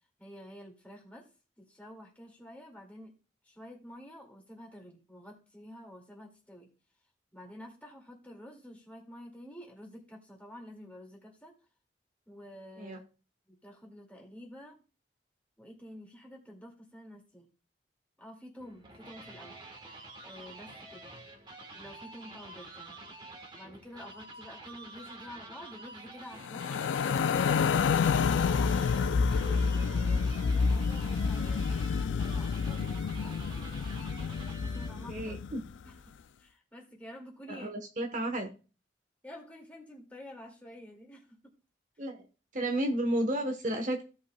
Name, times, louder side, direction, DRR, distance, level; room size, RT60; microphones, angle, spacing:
voice 1, 0.2-1.3 1.6-3.1 3.4-6.7 7.3-11.6 12.3-13.1 13.5-14.8 15.6-17.5 18.2-21.1 21.7-23.0 23.6-27.3 27.7-33.4 33.7-35.4 35.9-36.0 36.4-37.7 39.2-41.6, left 1 dB, 10° left, -1 dB, 2.2 m, -49 dB
sound 1, 18.6-35.1, right 2 dB, 25° right, 1.4 m, -48 dB
sound 2, 26.4-35.7, left 5 dB, 85° left, 0.4 m, -29 dB
voice 2, 35.1-35.6 37.5-38.5 42.0-42.3 42.5-44.0, right 1 dB, 40° right, 4 dB, 1.1 m, -32 dB
16.0 x 5.4 x 2.3 m, 0.34 s
head